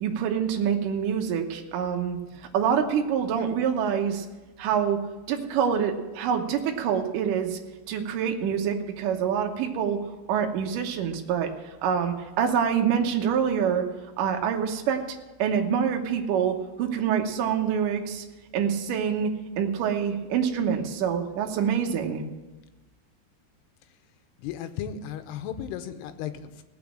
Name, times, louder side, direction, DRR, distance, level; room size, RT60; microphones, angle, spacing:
voice 1, 0.0-2.2 2.5-4.3 4.6-5.0 5.3-7.6 7.9-10.0 10.3-11.5 11.8-13.8 14.2-15.0 15.4-18.3 18.5-22.2, right 7 dB, 70° right, 3 dB, 2.2 m, -26 dB
voice 2, 24.4-26.6, left 9 dB, 80° left, 9 dB, 2.7 m, -35 dB
18.0 x 6.1 x 7.5 m, 1.2 s
omnidirectional pair, 4.9 m